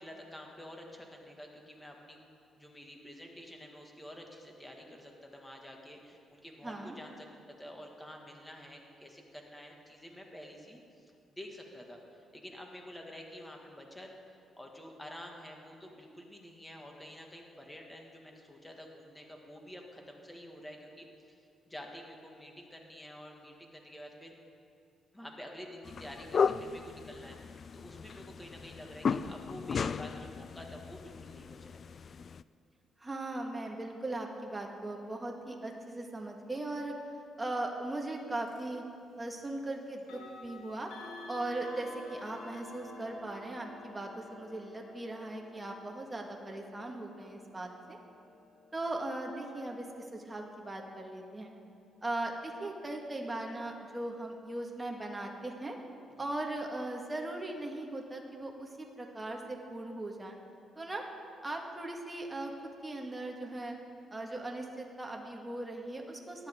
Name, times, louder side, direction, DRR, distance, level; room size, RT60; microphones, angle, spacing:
voice 1, 0.0-2.2 2.6-14.1 14.6-21.4 21.6-24.3 25.1-31.8 56.2-56.3, equal, 10° left, 1 dB, 2.1 m, -49 dB
voice 2, 6.6-6.9 33.0-37.0 37.4-38.8 39.2-40.9 41.3-48.0 48.7-51.5 52.0-55.8 56.2-60.4 60.8-61.0 61.4-62.5 62.8-63.8 64.1-66.5, right 2 dB, 15° right, 1 dB, 1.8 m, -39 dB
sound 1, 25.9-32.4, left 6 dB, 45° left, 0.3 m, -35 dB
sound 2, 38.5-38.7 40.0-50.9, left 3 dB, 90° left, 1.8 m, -51 dB
18.5 x 11.5 x 3.8 m, 2.5 s
cardioid pair, 90°, 0 cm